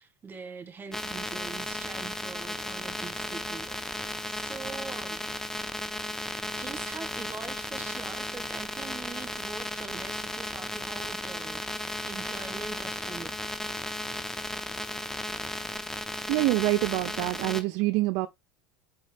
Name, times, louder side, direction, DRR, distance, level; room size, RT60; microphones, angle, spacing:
voice 1, 0.0-5.2 6.6-13.4, right 4 dB, 25° right, 1.5 m, -43 dB
sound 1, 0.9-17.6, left 1 dB, 5° left, 0.8 m, -35 dB
voice 2, 16.3-18.3, right 19 dB, 60° right, 0.4 m, -26 dB
6.4 x 5.0 x 3.4 m
hypercardioid pair, 100°, 8 cm